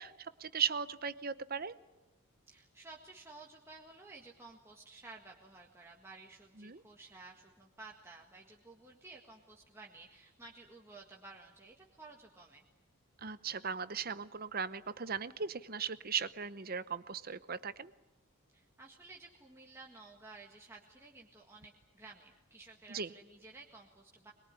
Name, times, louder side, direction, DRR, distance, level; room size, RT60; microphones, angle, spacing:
voice 1, 0.0-1.7 6.6-6.8 13.2-17.9 22.9-23.1, right 6 dB, 40° right, 15 dB, 0.8 m, -37 dB
voice 2, 2.5-12.6 18.5-24.3, right 3 dB, 10° right, -1 dB, 1.7 m, -54 dB
23.0 x 22.0 x 9.8 m, 1.0 s
head